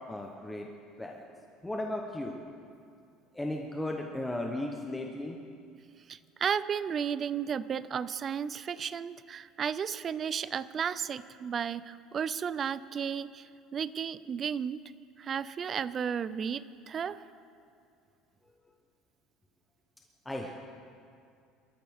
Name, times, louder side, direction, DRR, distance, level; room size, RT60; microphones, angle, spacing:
voice 1, 0.1-0.7 1.0-1.2 1.6-2.4 3.3-5.4 20.2-20.5, left 1 dB, 5° left, 1 dB, 0.9 m, -35 dB
voice 2, 6.1-14.8 15.2-17.2, right 7 dB, 25° right, 15 dB, 0.4 m, -33 dB
25.5 x 13.5 x 3.6 m, 2.5 s
cardioid pair, 165°, 0 cm